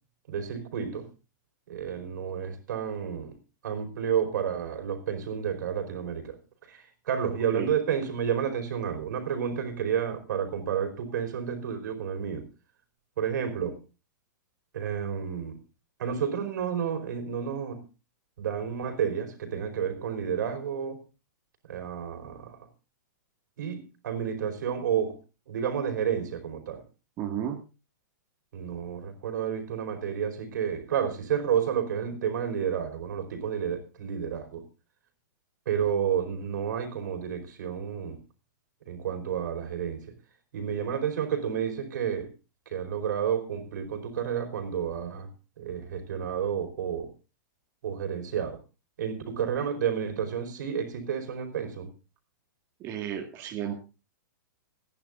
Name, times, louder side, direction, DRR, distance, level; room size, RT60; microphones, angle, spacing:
voice 1, 0.3-1.1 1.7-3.3 3.6-6.4 6.7-12.5 13.2-13.8 14.7-15.6 16.0-17.8 18.4-21.0 21.7-22.6 23.6-25.2 25.5-26.8 28.5-34.6 35.7-38.2 38.9-40.1 40.5-42.3 42.7-45.3 45.6-47.1 47.8-48.6 49.0-51.9, right 8 dB, 65° right, 6 dB, 4.8 m, -30 dB
voice 2, 27.2-27.6 52.8-53.8, right 10 dB, 25° right, 2 dB, 1.9 m, -33 dB
27.0 x 11.0 x 2.6 m, 0.31 s
hypercardioid pair, 160°, 10 cm